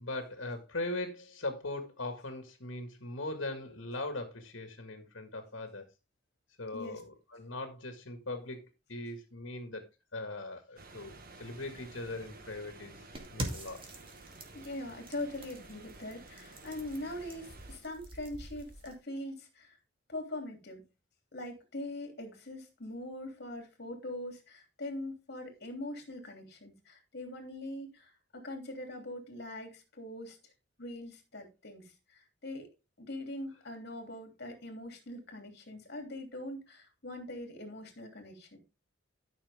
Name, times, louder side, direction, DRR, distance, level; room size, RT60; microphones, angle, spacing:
voice 1, 0.0-5.9 6.6-13.0 13.3-13.8, left 2 dB, 80° left, 1.9 m, -40 dB
sound 1, 10.8-17.8, right 2 dB, 50° right, 1.5 m, -53 dB
sound 2, 13.1-18.9, right 1 dB, 30° right, 2.3 m, -44 dB
voice 2, 14.5-19.8 20.1-20.8 21.3-30.4 30.8-32.7 33.0-38.6, left 1 dB, 55° left, 3.2 m, -42 dB
13.0 x 6.4 x 3.6 m
head